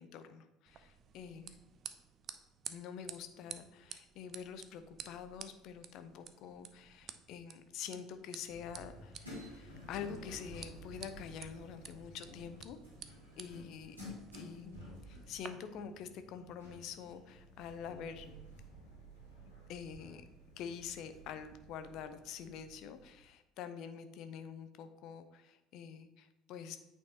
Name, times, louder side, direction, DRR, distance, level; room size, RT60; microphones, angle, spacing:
voice 1, 0.0-1.6 2.7-12.8 13.4-14.0 14.3-18.3 19.7-20.2 20.6-26.8, left 7 dB, 55° left, 10 dB, 0.5 m, -46 dB
sound 1, 0.7-15.5, right 8 dB, 45° right, 0.4 m, -53 dB
sound 2, 8.5-23.3, equal, 85° right, 2.3 m, -53 dB
8.6 x 4.6 x 2.9 m, 0.97 s
figure-of-eight pair, 60°, 0 cm